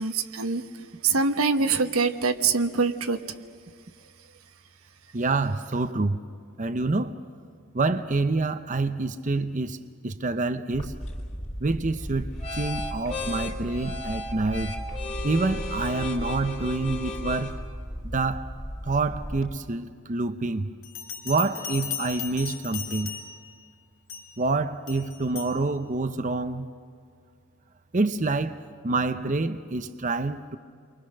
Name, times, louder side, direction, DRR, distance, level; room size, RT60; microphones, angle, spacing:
voice 1, 0.0-3.4, right 4 dB, 85° right, 1.2 m, -25 dB
voice 2, 5.1-6.2 6.6-7.2 7.7-9.8 10.0-10.9 11.6-14.7 15.2-17.6 18.0-18.5 18.8-20.7 21.2-23.1 24.4-26.7 27.9-30.6, right 3 dB, 35° right, 0.7 m, -27 dB
sound 1, 10.7-19.6, left 1 dB, 30° left, 3.3 m, -34 dB
Bell, 20.8-23.5 24.1-24.4 24.9-25.6, left 8 dB, 80° left, 2.5 m, -36 dB
30.0 x 23.5 x 6.6 m
head